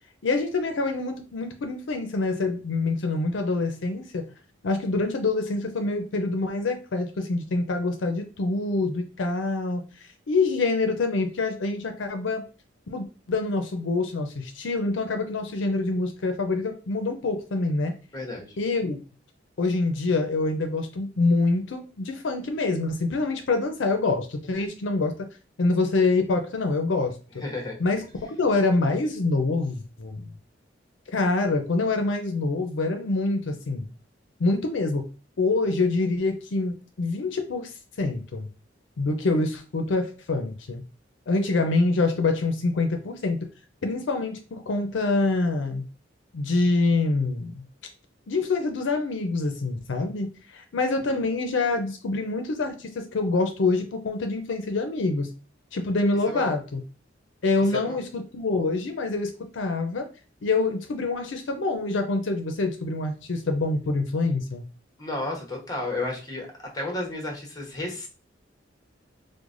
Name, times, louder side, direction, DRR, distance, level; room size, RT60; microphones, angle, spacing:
voice 1, 0.2-4.2 4.6-12.4 12.9-17.9 18.6-19.0 19.6-25.3 25.6-27.2 27.8-30.3 31.1-33.9 34.4-35.1 35.4-38.5 39.0-40.8 41.3-43.4 43.8-45.8 46.3-47.6 48.3-55.3 55.7-56.8 57.4-60.1 60.4-64.6, left 3 dB, 75° left, 5 dB, 0.5 m, -26 dB
voice 2, 18.1-18.5 27.4-27.8 51.1-51.2 56.3-56.6 57.7-58.0 65.0-66.5 66.7-68.1, left 2 dB, 20° left, 0 dB, 1.0 m, -32 dB
4.7 x 2.1 x 2.5 m, 0.35 s
head